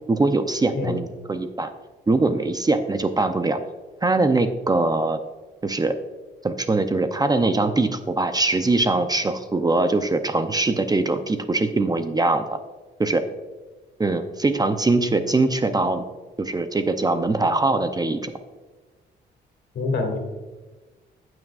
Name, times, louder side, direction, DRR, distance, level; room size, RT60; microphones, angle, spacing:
voice 1, 0.1-1.7 2.1-3.6 4.0-5.2 5.6-5.9 6.4-12.6 13.0-13.2 14.0-16.0 16.4-18.3, right 2 dB, 20° right, 8 dB, 0.6 m, -22 dB
voice 2, 19.7-20.2, left 3 dB, 65° left, 3 dB, 2.4 m, -25 dB
16.5 x 6.1 x 2.4 m, 1.3 s
cardioid pair, 90°, 20 cm